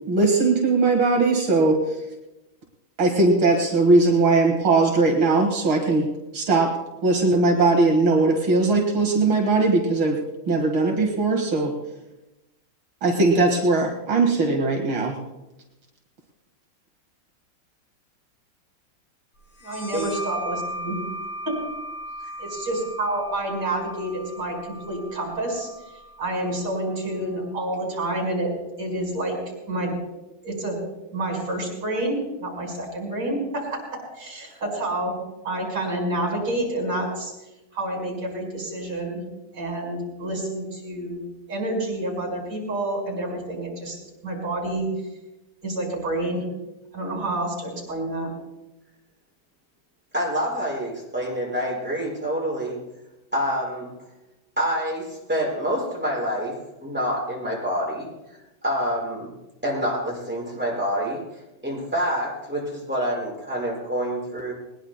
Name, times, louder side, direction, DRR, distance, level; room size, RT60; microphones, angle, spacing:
voice 1, 0.1-1.8 3.0-6.1 6.3-6.7 7.0-10.2 10.5-11.7 13.0-15.2, right 3 dB, 75° right, 1 dB, 2.5 m, -19 dB
sound 1, 19.6-26.9, equal, 50° left, 5.1 m, -37 dB
voice 2, 19.6-21.0 21.5-21.6 22.4-25.7 26.2-28.5 28.8-29.4 29.7-30.0 30.4-30.8 31.1-35.1 35.4-37.3 37.7-39.2 39.5-41.2 41.5-44.0 44.2-44.9 45.6-46.4 46.9-48.3, right 1 dB, 55° right, 0 dB, 5.3 m, -28 dB
voice 3, 50.1-52.8 53.3-53.9 54.6-58.1 58.6-59.3 59.6-61.2 61.6-64.5, equal, 5° right, -4 dB, 5.8 m, -27 dB
20.5 x 20.5 x 2.2 m, 0.99 s
omnidirectional pair, 2.2 m